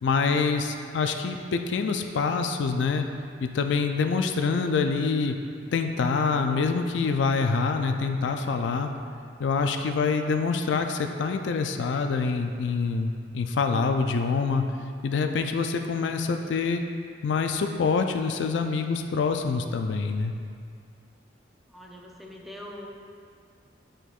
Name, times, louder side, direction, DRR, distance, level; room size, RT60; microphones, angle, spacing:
voice 1, 0.0-3.0 3.4-5.4 5.7-8.9 9.4-14.6 15.0-16.8 17.2-20.3, left 4 dB, 80° left, 6 dB, 0.4 m, -26 dB
voice 2, 21.7-22.9, left 1 dB, ahead, -2 dB, 0.5 m, -42 dB
8.9 x 4.5 x 2.4 m, 2.3 s
head